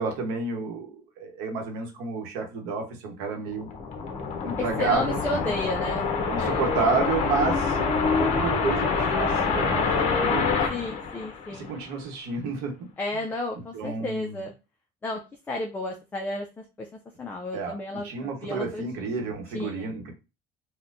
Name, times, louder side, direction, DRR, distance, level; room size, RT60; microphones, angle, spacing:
voice 1, 0.0-3.7 4.4-5.5 6.3-7.8 8.2-10.8 11.5-12.7 13.7-14.4 17.5-17.7 18.0-20.1, right 4 dB, 85° right, 3 dB, 1.0 m, -30 dB
sound 1, 3.5-11.8, left 4 dB, 45° left, 0.7 m, -26 dB
voice 2, 4.6-6.1 6.4-6.6 10.7-11.7 13.0-14.5 15.0-16.9 17.2-18.9 19.5-19.9, left 2 dB, 10° left, 1 dB, 0.3 m, -32 dB
4.2 x 2.2 x 2.5 m, 0.28 s
cardioid pair, 150°, 15 cm